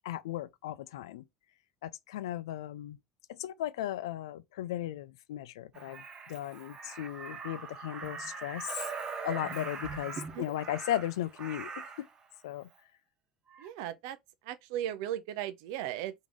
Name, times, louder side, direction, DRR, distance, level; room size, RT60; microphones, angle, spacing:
voice 1, 0.0-1.2 1.8-3.0 3.3-8.8 9.2-12.1 12.4-12.7, left 12 dB, 70° left, 0.3 m, -36 dB
Crow, 5.7-12.1 13.5-13.7, right 5 dB, 35° right, 1.1 m, -42 dB
voice 2, 13.6-14.2 14.4-16.1, right 11 dB, 65° right, 0.5 m, -36 dB
3.7 x 3.4 x 3.5 m
figure-of-eight pair, 65°, 3 cm